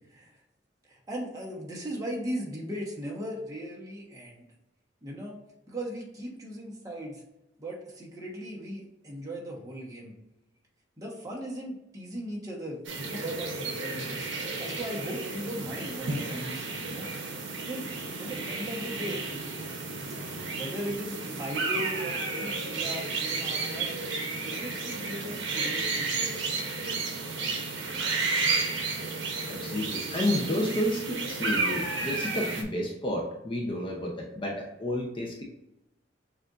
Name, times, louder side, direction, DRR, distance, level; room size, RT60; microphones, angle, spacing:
voice 1, 0.9-4.5 5.0-5.4 5.7-7.2 7.6-10.1 11.0-14.3 14.6-17.1 17.6-17.9 18.2-19.2 20.3-23.9 24.4-26.3, equal, 20° right, -4 dB, 1.1 m, -38 dB
sound 1, 12.8-32.6, right 3 dB, 80° right, 0.8 m, -32 dB
voice 2, 29.5-35.4, left 1 dB, 25° left, 0 dB, 0.6 m, -31 dB
6.7 x 2.6 x 2.5 m, 0.90 s
head